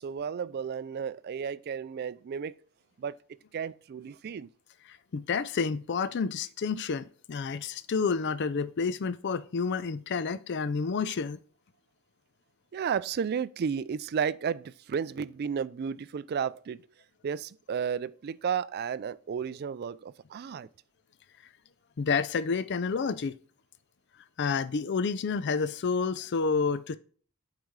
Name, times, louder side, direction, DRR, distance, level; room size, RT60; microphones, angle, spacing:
voice 1, 0.0-2.5 3.0-3.2 3.5-4.5 12.7-16.8 17.2-20.7, right 7 dB, 45° right, 0.3 m, -33 dB
voice 2, 5.1-11.4 22.0-23.4 24.4-27.0, left 5 dB, 50° left, 0.4 m, -29 dB
8.0 x 4.9 x 3.2 m
head